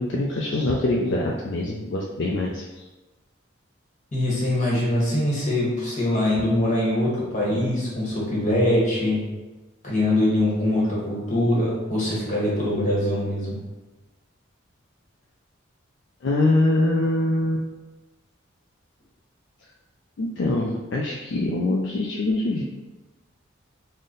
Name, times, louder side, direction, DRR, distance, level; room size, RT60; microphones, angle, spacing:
voice 1, 0.0-2.8 7.5-7.6 16.2-17.7 20.2-22.6, left 2 dB, 60° left, -2 dB, 0.3 m, -24 dB
voice 2, 4.1-9.3 9.8-13.6, left 1 dB, 35° left, -5 dB, 1.1 m, -23 dB
3.9 x 2.1 x 3.8 m, 1.1 s
head